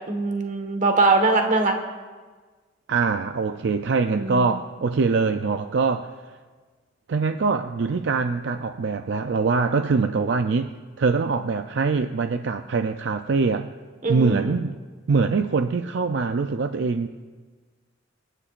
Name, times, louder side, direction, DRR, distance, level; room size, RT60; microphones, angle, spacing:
voice 1, 0.1-1.8 4.1-4.6 14.0-14.6, right 3 dB, 40° right, 5 dB, 1.4 m, -22 dB
voice 2, 2.9-6.1 7.1-10.7 11.0-13.7 14.1-14.8 15.1-17.1, right 4 dB, 65° right, 8 dB, 0.5 m, -23 dB
28.0 x 10.0 x 2.5 m, 1.4 s
head